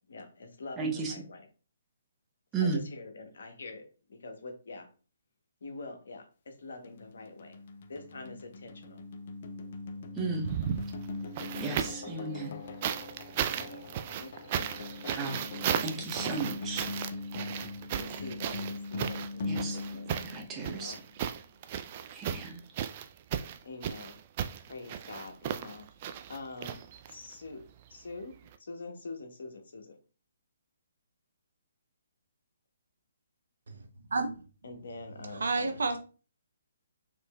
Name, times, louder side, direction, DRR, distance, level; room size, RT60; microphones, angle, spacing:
voice 1, 0.1-1.4 2.6-4.9 5.6-7.6 7.9-9.0 12.0-12.2 13.5-13.8 14.2-15.2 16.2-16.4 17.5-17.7 18.0-20.2 20.6-21.0 23.6-24.2 24.7-25.9 26.3-26.8 27.1-27.6 27.9-30.0 34.6-35.8, left 3 dB, 70° left, 0.9 m, -45 dB
voice 2, 0.8-1.1 2.5-2.8 10.1-10.5 11.6-12.6 15.2-15.4 15.8-16.9 19.4-19.8 20.2-21.0 22.1-22.6, right 4 dB, 15° right, 0.8 m, -34 dB
bendir accelerating, 6.8-21.0, left 3 dB, 50° left, 0.4 m, -41 dB
sound 1, 10.4-12.1 12.8-27.3 28.5-28.6, right 9 dB, 40° right, 0.3 m, -35 dB
voice 3, 35.4-36.0, right 3 dB, 70° right, 0.6 m, -29 dB
4.2 x 3.1 x 2.3 m
figure-of-eight pair, 140°, 0 cm